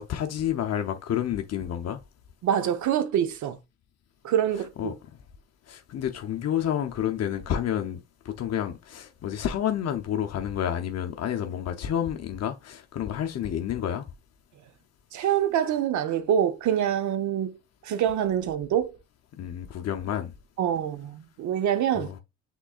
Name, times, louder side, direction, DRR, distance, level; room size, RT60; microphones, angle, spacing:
voice 1, 0.0-2.0 4.8-4.9 5.7-14.1 19.4-20.3 21.9-22.2, left 10 dB, 55° left, 0.7 m, -29 dB
voice 2, 2.4-3.6 4.2-4.9 15.1-17.6 17.8-18.9 20.6-22.1, right 10 dB, 75° right, 0.8 m, -25 dB
5.9 x 3.8 x 2.4 m
cardioid pair, 90°, 30 cm